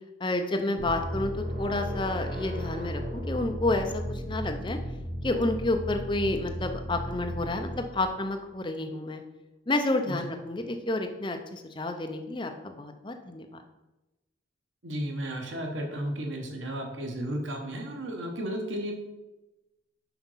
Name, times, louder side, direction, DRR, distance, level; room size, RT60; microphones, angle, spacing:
voice 1, 0.2-4.8 5.2-9.2 9.7-13.5, left 2 dB, 25° left, 5 dB, 0.6 m, -30 dB
sound 1, 0.8-8.2, equal, 45° right, 1.4 m, -35 dB
voice 2, 14.8-18.9, right 1 dB, 85° right, 2 dB, 1.2 m, -33 dB
5.9 x 5.0 x 5.6 m, 1.0 s
head